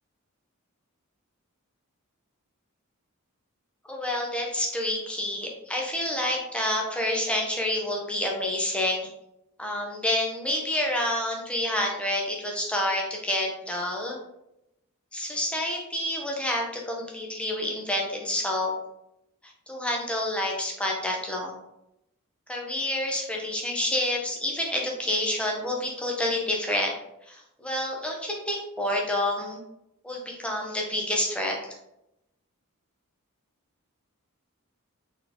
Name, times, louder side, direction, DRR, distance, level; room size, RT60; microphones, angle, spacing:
voice 1, 3.9-9.1 9.6-14.2 15.1-18.7 19.7-21.6 22.5-26.9 27.3-29.6 30.0-31.6, left 1 dB, 5° left, -1 dB, 0.8 m, -28 dB
4.0 x 3.7 x 2.9 m, 0.84 s
head